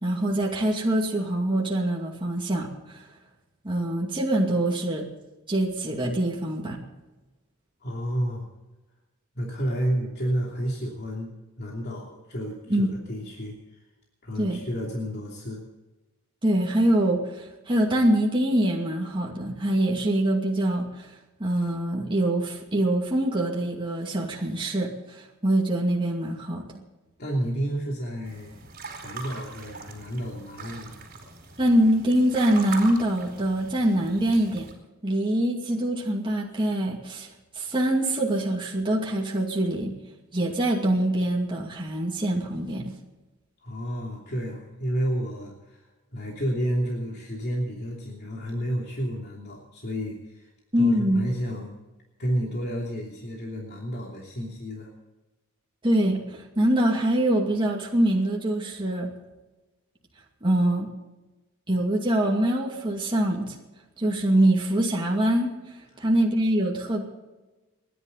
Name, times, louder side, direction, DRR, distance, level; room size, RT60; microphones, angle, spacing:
voice 1, 0.0-3.0 3.6-5.1 5.5-6.8 12.7-12.9 14.4-14.6 16.4-21.1 21.4-26.7 31.6-34.7 35.0-37.3 37.6-39.9 40.3-42.9 50.7-51.2 55.8-59.1 60.4-60.9 61.7-63.6 64.0-65.5 66.0-67.0, right 1 dB, 25° right, -2 dB, 2.4 m, -24 dB
voice 2, 7.8-8.4 9.3-11.3 11.6-13.8 14.2-15.6 27.2-28.6 29.0-31.0 43.6-45.8 46.1-50.5 50.8-51.8 52.2-54.9 65.9-66.1, equal, 50° left, -2 dB, 3.0 m, -31 dB
sound 1, 28.3-34.7, right 4 dB, 45° right, 4.5 m, -41 dB
30.0 x 11.0 x 4.1 m, 1.1 s
head